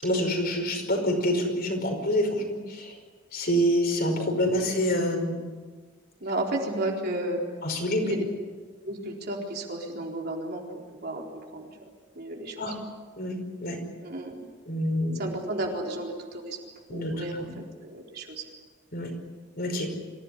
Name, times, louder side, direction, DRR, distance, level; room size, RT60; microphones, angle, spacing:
voice 1, 0.0-3.0 3.3-5.4 7.6-8.1 12.6-12.7 13.2-13.8 14.7-15.2 16.9-17.5 18.9-19.1 19.6-19.9, equal, 45° left, 3 dB, 5.3 m, -27 dB
voice 2, 6.2-7.4 8.0-8.2 8.8-11.7 12.2-12.7 14.0-14.5 15.1-16.6 16.9-18.4, right 1 dB, 45° right, 0 dB, 4.1 m, -33 dB
26.0 x 16.5 x 9.9 m, 1.4 s
head